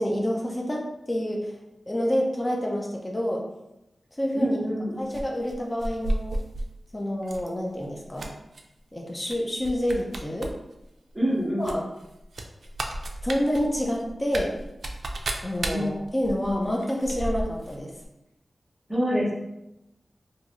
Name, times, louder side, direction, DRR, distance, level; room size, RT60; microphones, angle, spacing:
voice 1, 0.0-1.5 1.9-3.4 4.2-4.6 5.0-6.4 6.9-8.3 8.9-10.5 11.6-11.8 13.2-14.5 15.4-17.9, equal, 20° left, -1 dB, 0.4 m, -28 dB
voice 2, 4.3-5.0 11.1-11.8 15.7-15.9 18.9-19.3, equal, 15° right, -5 dB, 0.7 m, -26 dB
sound 1, 5.1-6.7 7.2-7.5 7.8-8.6 9.2-9.4 9.6-10.5 10.8-10.9 11.6-17.8 18.0-18.1, right 1 dB, 80° right, 0.3 m, -33 dB
2.9 x 2.6 x 2.5 m, 0.90 s
wide cardioid pair, 115°, 0 cm